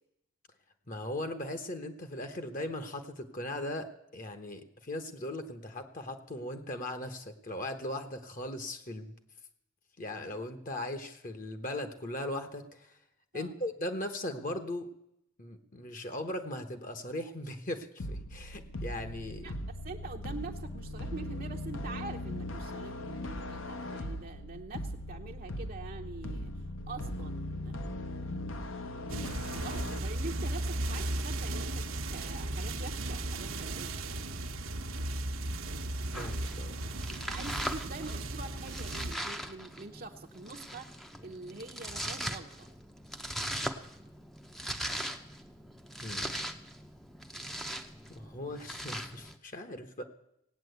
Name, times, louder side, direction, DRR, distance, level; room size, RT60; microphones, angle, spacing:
voice 1, 0.9-9.1 10.0-13.0 13.3-14.9 15.4-19.5 29.1-29.3 36.2-36.8 46.0-46.3 48.1-50.0, left 1 dB, 40° left, 8 dB, 1.1 m, -38 dB
sound 1, 18.0-30.0, left 1 dB, 65° left, 1.1 m, -39 dB
voice 2, 19.8-26.5 26.9-27.3 27.6-27.8 29.5-33.9 37.1-42.7, right 3 dB, 40° right, 2 dB, 0.8 m, -45 dB
sound 2, 29.1-39.2, right 1 dB, 70° right, 1.0 m, -36 dB
Domestic sounds home sounds, 36.1-49.4, equal, ahead, 0.7 m, -40 dB
17.5 x 9.0 x 8.0 m, 0.81 s
head